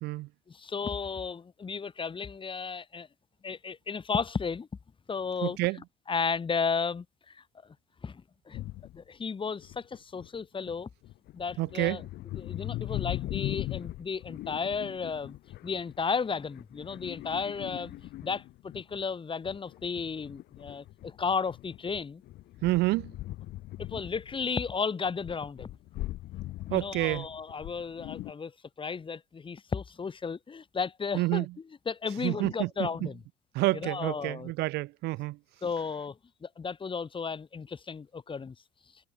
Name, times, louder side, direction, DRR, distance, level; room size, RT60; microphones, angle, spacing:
voice 1, 0.5-3.1 3.4-4.7 5.1-5.6 6.1-7.4 8.0-8.6 8.9-10.9 11.3-12.0 12.4-15.4 15.6-17.9 18.2-18.4 18.7-22.2 23.8-25.7 26.6-28.5 28.8-31.5 31.8-33.2 33.7-34.5 35.6-36.2 36.4-38.5, left 5 dB, 30° left, 6.8 m, -34 dB
voice 2, 5.4-5.8 11.6-12.0 22.6-23.1 26.7-27.3 31.1-31.5 32.2-33.1 33.5-35.4, right 20 dB, 75° right, 1.7 m, -29 dB
sound 1, 8.5-9.0 9.6-10.3 10.6-19.0 19.4-24.7 25.0-28.3, left 16 dB, 70° left, 5.9 m, -40 dB
supercardioid pair, 95°, 17 cm